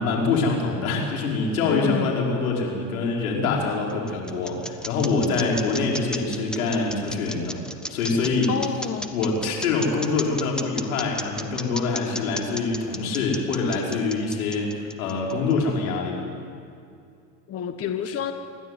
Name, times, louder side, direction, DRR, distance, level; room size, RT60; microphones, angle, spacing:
voice 1, 0.0-7.6 7.9-8.5 9.1-16.2, left 4 dB, 90° left, -1 dB, 5.5 m, -25 dB
voice 2, 1.7-2.2 8.5-9.1 17.5-18.3, left 8 dB, 35° left, 7 dB, 1.4 m, -28 dB
sound 1, 3.7-15.5, equal, ahead, 1.3 m, -34 dB
27.5 x 12.0 x 9.5 m, 2.5 s
supercardioid pair, 110°, 41 cm